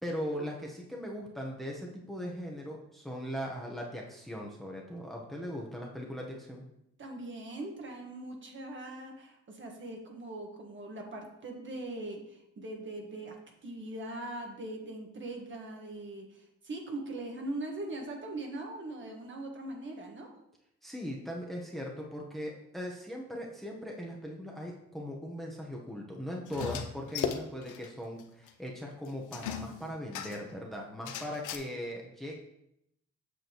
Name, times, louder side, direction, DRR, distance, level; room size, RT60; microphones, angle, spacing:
voice 1, 0.0-6.6 20.8-32.4, equal, ahead, -1 dB, 1.1 m, -39 dB
voice 2, 7.0-13.4 13.6-20.3, right 2 dB, 40° right, 1 dB, 1.6 m, -41 dB
sound 1, 26.5-27.9 28.2-28.3 28.5-28.6 29.3-30.5 31.1-31.6, left 8 dB, 90° left, 0.7 m, -37 dB
8.1 x 6.2 x 3.1 m, 0.80 s
cardioid pair, 90°, 30 cm